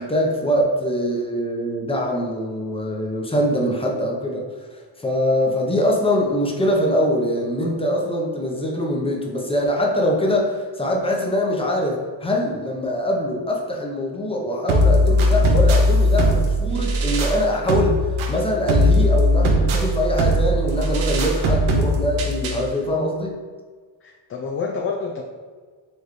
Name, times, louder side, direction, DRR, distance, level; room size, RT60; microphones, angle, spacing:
voice 1, 0.0-4.5 5.0-23.4, left 1 dB, 10° left, -1 dB, 0.8 m, -23 dB
sound 1, 14.7-22.7, equal, 80° right, 0.8 m, -19 dB
voice 2, 24.0-25.2, left 4 dB, 30° left, 1 dB, 0.4 m, -28 dB
4.5 x 3.3 x 3.1 m, 1.5 s
cardioid pair, 85°, 48 cm